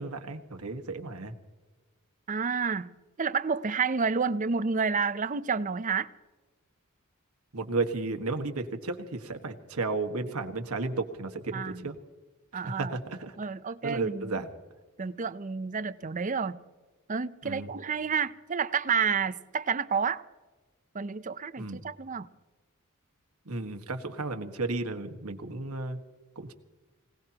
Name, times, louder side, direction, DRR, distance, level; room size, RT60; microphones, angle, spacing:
voice 1, 0.0-1.3 7.5-12.0 12.5-13.4 13.7-14.5 17.4-17.7 21.6-21.8 23.5-26.0 26.4-26.5, right 3 dB, 85° right, 1.6 m, -33 dB
voice 2, 2.3-6.1 11.5-11.9 12.5-12.9 13.4-14.4 15.0-16.6 17.1-20.2 20.9-22.3, right 5 dB, 35° right, 0.6 m, -30 dB
25.5 x 18.0 x 2.9 m
head